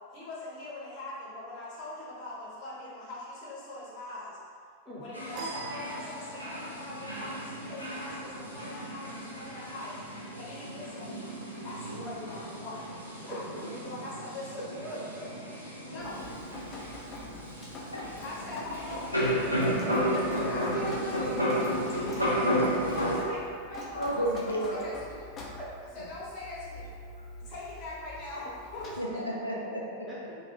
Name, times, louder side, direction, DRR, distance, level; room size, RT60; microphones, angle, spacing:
voice 1, 0.1-4.4 5.0-11.3 11.6-14.6 15.8-17.2 18.2-19.1 20.4-21.3 21.7-21.9 22.9-25.2 25.9-26.9 27.4-28.4 28.7-28.9, left 2 dB, 40° left, -7 dB, 0.8 m, -42 dB
sound 1, 5.1-23.2, equal, 90° right, 0.5 m, -33 dB
sound 2, 5.3-6.7, right 3 dB, 40° right, 0.6 m, -41 dB
voice 2, 14.5-15.3 19.9-20.3 21.7-22.0 23.2-23.3 25.6-25.7 27.5-27.6 30.1-30.4, right 1 dB, 15° right, -9 dB, 0.9 m, -42 dB
Drip, 16.0-29.0, left 2 dB, 25° left, 0.4 m, -45 dB
voice 3, 24.0-24.8 25.5-25.6 29.0-30.1, right 1 dB, 85° left, -3 dB, 0.4 m, -32 dB
2.3 x 2.3 x 2.9 m, 2.2 s
figure-of-eight pair, 90°, 0 cm